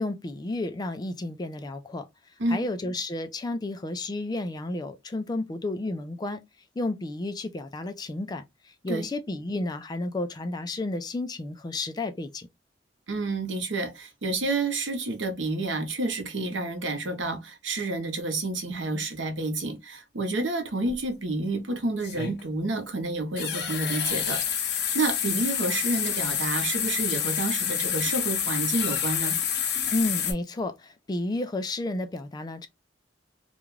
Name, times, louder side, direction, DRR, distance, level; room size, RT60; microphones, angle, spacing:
voice 1, 0.0-2.1 2.5-6.4 6.8-12.5 29.9-32.7, left 2 dB, 20° left, 0.3 m, -32 dB
voice 2, 13.1-29.4, right 2 dB, 85° right, 0.9 m, -29 dB
sound 1, 20.9-21.0 22.0-22.4 23.4-30.3, left 8 dB, 60° left, 0.7 m, -28 dB
2.5 x 2.3 x 3.1 m
head